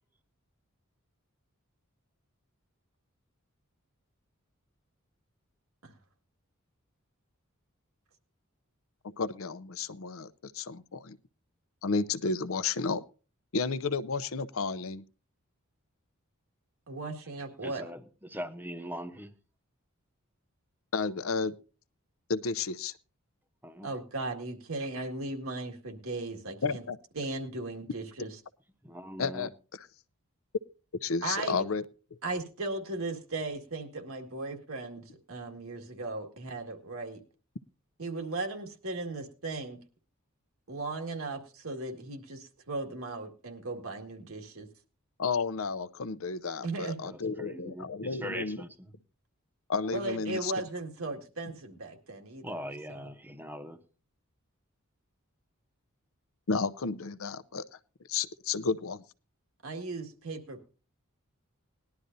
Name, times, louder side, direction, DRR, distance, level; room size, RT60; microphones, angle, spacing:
voice 1, 9.2-11.2 11.8-13.0 13.5-15.0 20.9-21.5 22.3-22.9 26.6-27.0 29.2-29.9 31.0-31.8 45.2-48.6 49.7-50.5 56.5-57.6 58.1-59.0, left 4 dB, 70° left, 0.6 m, -32 dB
voice 2, 16.9-17.9 23.8-26.8 27.2-28.3 31.2-31.6 32.2-37.2 38.0-39.8 40.7-44.7 46.6-47.0 49.9-52.6 52.9-53.1 59.6-60.7, right 2 dB, 75° right, 2.0 m, -37 dB
voice 3, 17.6-18.0 18.3-19.3 23.6-23.9 28.8-29.5 47.1-48.9 52.4-53.8, equal, 10° right, 0.9 m, -41 dB
19.5 x 11.5 x 2.7 m
head